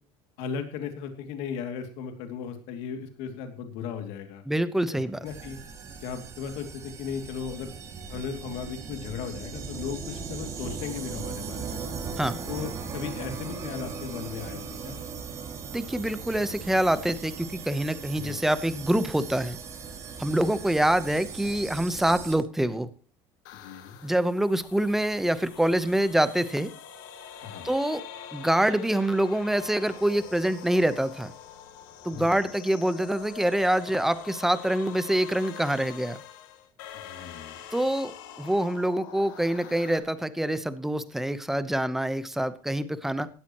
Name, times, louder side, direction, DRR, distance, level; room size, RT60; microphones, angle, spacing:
voice 1, 0.4-4.4 4.9-5.6 6.0-7.7 8.1-11.8 12.5-15.0 18.2-18.4 20.2-20.5 23.5-24.0 27.4-27.7 32.1-32.3 36.9-37.6, left 7 dB, 65° left, 6 dB, 2.6 m, -36 dB
voice 2, 4.5-5.2 12.2-12.4 15.7-19.6 20.2-22.9 24.0-26.7 27.6-28.0 28.3-31.3 32.0-36.2 37.7-38.1 38.4-43.3, right 1 dB, 5° right, 12 dB, 0.9 m, -25 dB
sound 1, 5.2-22.4, right 5 dB, 30° right, 3.0 m, -38 dB
sound 2, 23.4-40.0, left 9 dB, 85° left, 2.3 m, -45 dB
18.0 x 13.0 x 3.1 m, 0.37 s
cardioid pair, 155°, 11 cm